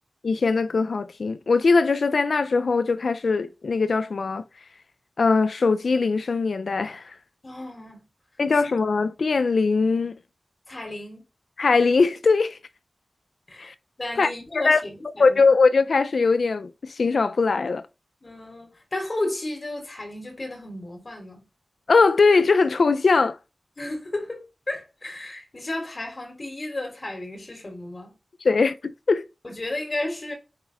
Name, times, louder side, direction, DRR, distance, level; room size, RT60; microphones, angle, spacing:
voice 1, 0.2-4.4 5.2-7.0 8.4-10.2 11.6-12.6 13.6-13.7 14.2-14.3 14.6-14.8 15.2-17.8 21.9-23.4 28.4-29.3, left 4 dB, 80° left, 0.6 m, -21 dB
voice 2, 7.4-8.1 8.5-8.6 10.7-11.2 13.5-13.7 14.0-15.4 18.2-21.5 23.8-28.1 29.4-30.3, left 2 dB, 45° left, 3.2 m, -33 dB
9.9 x 3.6 x 3.4 m
wide cardioid pair, 75°, 0 cm